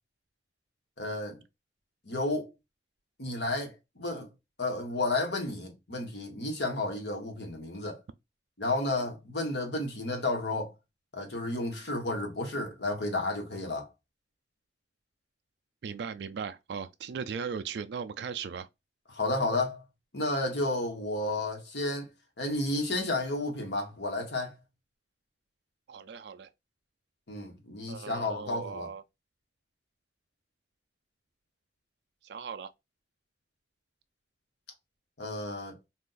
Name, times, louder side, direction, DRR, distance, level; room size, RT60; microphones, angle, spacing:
voice 1, 1.0-1.4 2.1-2.5 3.2-4.3 4.6-8.0 8.6-10.7 11.1-13.9 19.1-19.8 20.1-22.1 22.4-24.5 27.3-28.9 35.2-35.8, left 2 dB, 75° left, 1.2 m, -32 dB
voice 2, 15.8-18.7 25.9-26.5 27.9-29.0 32.2-32.7, right 6 dB, 70° right, 0.3 m, -38 dB
2.8 x 2.5 x 3.8 m
head